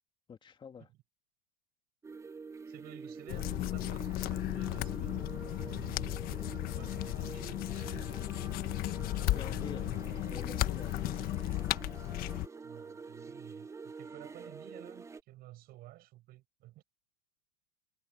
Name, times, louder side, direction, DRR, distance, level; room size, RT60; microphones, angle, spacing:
voice 1, 0.3-0.9 9.3-9.8 10.2-11.0 11.6-11.7, left 7 dB, 25° left, 2.5 m, -47 dB
sound 1, 2.0-15.2, right 4 dB, 15° right, 1.0 m, -47 dB
voice 2, 2.7-8.2 9.0-10.0 12.6-16.8, right 16 dB, 45° right, 7.1 m, -53 dB
sound 2, 3.3-12.5, left 17 dB, 45° left, 1.4 m, -35 dB
supercardioid pair, 115°, 21 cm